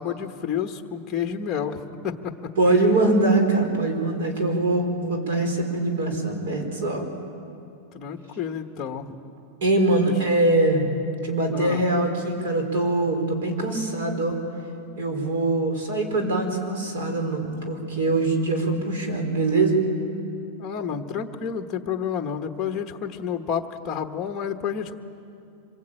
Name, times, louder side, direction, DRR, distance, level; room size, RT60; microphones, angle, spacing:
voice 1, 0.0-2.5 7.9-9.2 10.1-10.2 11.5-11.8 20.6-25.0, left 7 dB, 20° left, 5 dB, 1.2 m, -30 dB
voice 2, 2.6-7.1 9.6-10.9 11.2-14.4 15.0-19.8, right 2 dB, 70° right, 4 dB, 4.6 m, -23 dB
26.0 x 21.5 x 8.9 m, 2.6 s
supercardioid pair, 175°, 0 cm